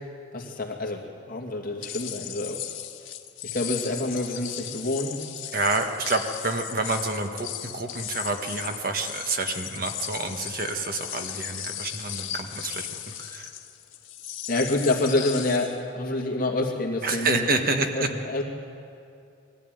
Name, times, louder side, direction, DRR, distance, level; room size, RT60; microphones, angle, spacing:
voice 1, 0.3-2.6 3.4-5.2 14.5-17.5 17.9-18.4, left 2 dB, 45° left, 0 dB, 2.5 m, -27 dB
sound 1, 1.8-15.8, left 11 dB, 85° left, 1.4 m, -36 dB
voice 2, 5.5-13.5 17.0-18.1, right 3 dB, 45° right, 5 dB, 1.3 m, -28 dB
21.5 x 14.5 x 9.3 m, 2.6 s
head